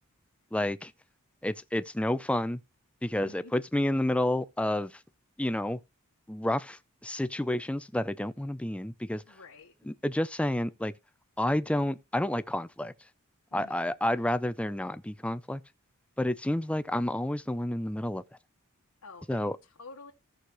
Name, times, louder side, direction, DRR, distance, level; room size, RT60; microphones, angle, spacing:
voice 1, 0.5-0.9 1.4-2.6 3.0-4.9 5.4-5.8 6.3-9.2 9.9-10.9 11.4-12.9 13.5-15.6 16.2-18.2 19.3-19.5, left 1 dB, 5° left, 0.4 m, -30 dB
voice 2, 3.1-3.5 9.3-9.7 13.5-13.9 19.0-20.1, left 3 dB, 80° left, 1.3 m, -49 dB
15.5 x 6.4 x 3.0 m
head